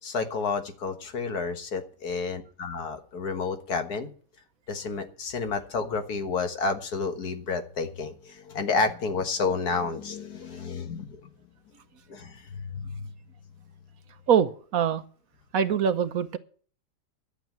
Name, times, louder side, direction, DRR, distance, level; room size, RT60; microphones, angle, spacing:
voice 1, 0.0-4.1 4.7-11.3 12.1-13.1, left 4 dB, 70° left, 1.9 m, -30 dB
voice 2, 14.3-15.0 15.5-16.4, right 8 dB, 65° right, 1.1 m, -23 dB
11.5 x 7.3 x 9.2 m
omnidirectional pair, 1.7 m